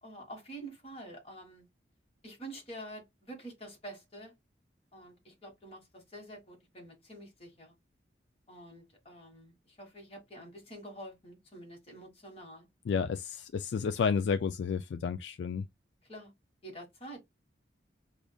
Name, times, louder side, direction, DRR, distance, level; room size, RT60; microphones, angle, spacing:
voice 1, 0.0-1.7 2.2-4.3 4.9-7.7 8.5-12.7 16.1-16.3 16.6-17.2, right 1 dB, 35° left, 1.6 m, -47 dB
voice 2, 12.9-15.7, left 6 dB, 70° left, 0.3 m, -31 dB
4.9 x 2.4 x 2.3 m
head